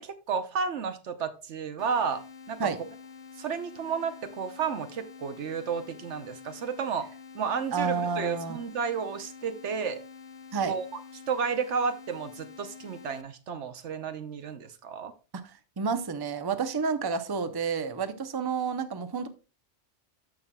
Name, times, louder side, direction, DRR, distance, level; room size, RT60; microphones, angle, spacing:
voice 1, 0.0-2.2 2.5-2.7 3.4-7.1 7.3-10.0 10.7-10.9 11.3-15.1, right 6 dB, 70° right, 1.1 m, -32 dB
sound 1, 1.8-13.2, left 5 dB, 40° left, 0.7 m, -48 dB
voice 2, 7.7-8.6 10.5-10.7 15.8-19.3, right 5 dB, 25° right, 0.6 m, -29 dB
13.5 x 5.6 x 2.3 m
omnidirectional pair, 1.2 m